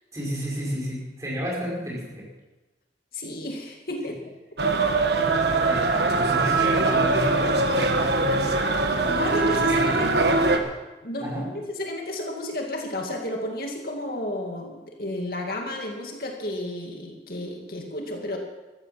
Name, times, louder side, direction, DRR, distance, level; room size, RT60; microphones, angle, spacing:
voice 1, 0.1-2.3 5.1-8.6 9.2-10.7 11.2-11.5, equal, 20° right, -3 dB, 5.5 m, -33 dB
voice 2, 3.1-4.2 4.7-4.8 8.9-10.6 11.0-18.4, left 1 dB, 55° left, 1 dB, 2.3 m, -32 dB
sound 1, 4.6-10.6, right 3 dB, 70° right, 1.5 m, -22 dB
14.5 x 14.5 x 5.9 m, 1.2 s
head